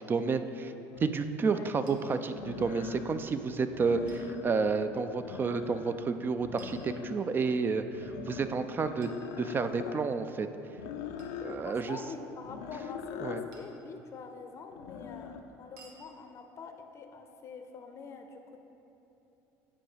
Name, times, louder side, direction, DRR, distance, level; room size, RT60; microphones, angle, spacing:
voice 1, 0.1-0.7 1.0-9.1 9.4-10.5 11.4-12.0 13.2-13.4, right 4 dB, 30° right, 10 dB, 0.4 m, -30 dB
sound 1, 0.9-1.0 2.3-3.2 3.7-4.7 5.1-6.0 6.4-7.4 7.9-10.0 10.8-11.6 12.4-13.5 14.7-15.4, left 7 dB, 90° left, 0.5 m, -42 dB
voice 2, 1.4-1.8 4.9-5.4 11.6-18.6, left 5 dB, 40° left, 6 dB, 0.6 m, -46 dB
sound 2, 1.9-2.0 4.1-4.3 6.6-7.5 9.0-9.9 11.2-11.5 13.5-13.9 15.8-16.0, right 4 dB, 80° right, 1.0 m, -57 dB
8.5 x 4.7 x 5.0 m, 3.0 s
supercardioid pair, 105°, 8 cm